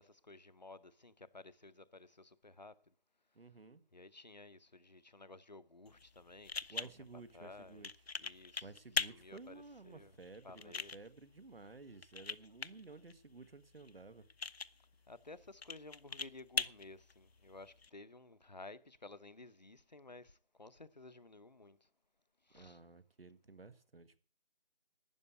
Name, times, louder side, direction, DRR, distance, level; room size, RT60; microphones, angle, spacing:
voice 1, 0.0-2.9 3.9-6.9 7.3-7.9 8.1-8.7 9.1-10.2 10.4-10.9 15.1-21.9 22.4-22.8, left 2 dB, 45° left, 0.7 m, -55 dB
voice 2, 3.3-3.8 6.7-7.9 8.6-14.3 22.5-24.2, right 3 dB, 70° right, 1.7 m, -54 dB
sound 1, 5.9-17.9, left 4 dB, 80° left, 0.9 m, -44 dB
12.5 x 9.3 x 8.0 m
figure-of-eight pair, 180°, 30 cm